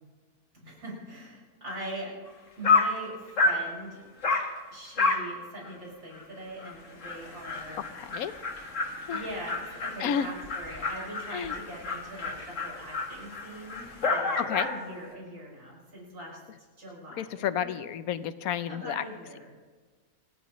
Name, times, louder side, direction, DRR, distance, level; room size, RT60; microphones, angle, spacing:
voice 1, 0.6-2.1 2.6-4.0 4.7-7.8 9.1-16.4 16.8-17.7 18.7-19.5, right 1 dB, 75° right, -4 dB, 6.2 m, -41 dB
Dog, 2.3-2.4 2.6-3.0 3.4-3.7 4.2-4.5 5.0-5.3 5.6-5.7 6.2-6.3 6.6-6.7 7.0-14.8, left 3 dB, 55° left, 2.0 m, -30 dB
voice 2, 7.7-8.3 9.1-9.2 10.0-10.3 11.3-11.5 14.4-14.7 17.1-19.0, left 9 dB, 75° left, 13 dB, 1.2 m, -31 dB
27.5 x 14.5 x 3.1 m, 1.5 s
omnidirectional pair, 1.6 m